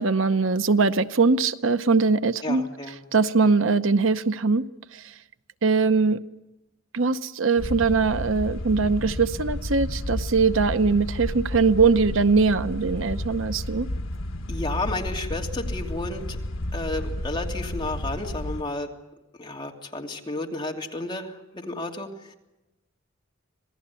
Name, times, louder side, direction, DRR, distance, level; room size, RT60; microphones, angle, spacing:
voice 1, 0.0-2.6 3.1-4.6 4.9-5.0 5.6-6.2 6.9-13.9, right 4 dB, 75° right, 0.8 m, -21 dB
voice 2, 2.4-3.0 14.5-16.4 16.7-18.9 19.4-22.3, left 2 dB, 25° left, 2.9 m, -32 dB
sound 1, 7.6-18.6, left 1 dB, 80° left, 1.3 m, -32 dB
26.5 x 18.5 x 8.4 m
head